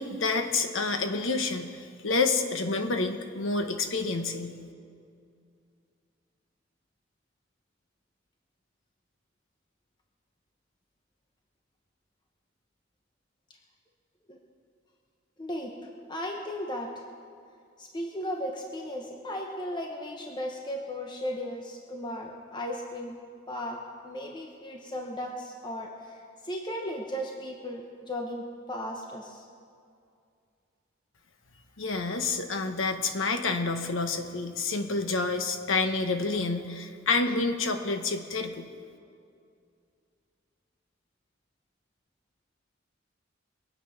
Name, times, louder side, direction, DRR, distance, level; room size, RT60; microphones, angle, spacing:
voice 1, 0.0-1.7 2.0-4.6 31.8-38.6, left 3 dB, 85° left, 7 dB, 1.2 m, -28 dB
voice 2, 15.4-15.7 16.1-17.0 17.8-23.2 23.5-29.5, equal, 25° left, 1 dB, 1.1 m, -36 dB
22.5 x 8.6 x 5.8 m, 2.4 s
head